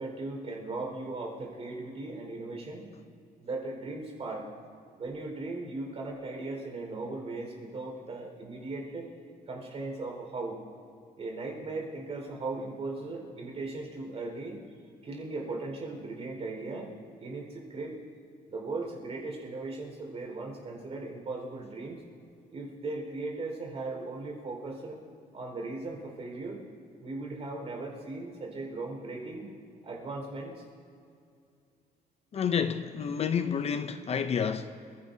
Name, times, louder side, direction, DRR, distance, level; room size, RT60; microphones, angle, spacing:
voice 1, 0.0-2.9 3.4-4.4 5.0-9.1 9.5-10.6 11.2-14.5 15.0-18.0 18.5-22.0 22.5-25.0 25.3-26.6 27.0-29.5 29.8-30.6, right 3 dB, 40° right, 4.7 m, -38 dB
voice 2, 32.3-34.8, left 7 dB, 40° left, 0.6 m, -29 dB
29.5 x 16.0 x 2.8 m
cardioid pair, 135°, 16 cm